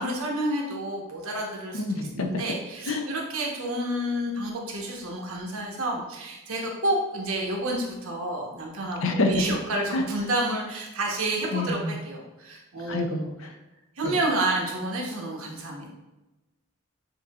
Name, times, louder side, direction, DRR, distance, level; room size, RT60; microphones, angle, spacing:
voice 1, 0.0-13.2 14.0-15.9, right 1 dB, 80° right, -1 dB, 1.0 m, -30 dB
voice 2, 1.7-2.4 2.9-3.1 9.0-9.3 9.9-10.0 11.5-12.0 12.9-13.5 14.0-14.2, left 2 dB, 65° left, 4 dB, 0.5 m, -27 dB
6.5 x 2.7 x 2.4 m, 1.1 s
head